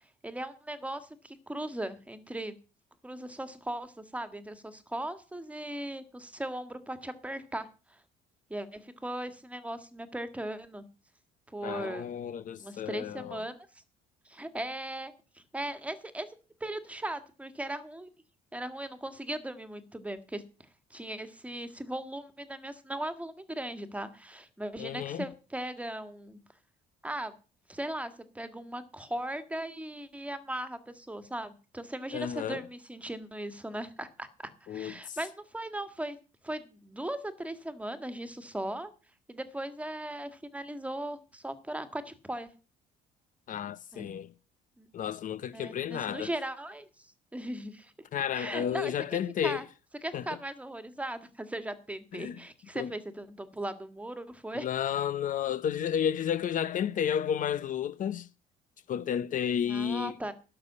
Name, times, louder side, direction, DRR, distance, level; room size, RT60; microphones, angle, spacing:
voice 1, 0.2-2.5 3.0-7.7 8.5-10.8 11.5-12.1 12.6-13.6 14.3-15.1 15.5-16.3 16.6-18.1 18.5-20.4 20.9-26.4 27.0-27.3 27.7-34.3 34.7-36.2 36.4-38.9 39.3-42.5 43.9-44.1 44.8-44.9 45.5-47.9 48.3-49.6 50.0-54.7 59.7-60.3, right 1 dB, 10° right, 1.8 m, -38 dB
voice 2, 11.6-13.4 24.8-25.2 32.1-32.6 34.7-35.2 43.5-44.3 44.9-46.3 48.1-49.6 50.1-50.3 52.1-52.4 52.7-52.9 54.5-58.3 58.9-60.2, left 9 dB, 50° left, 0.8 m, -32 dB
12.0 x 6.9 x 8.5 m
cardioid pair, 110°, 17 cm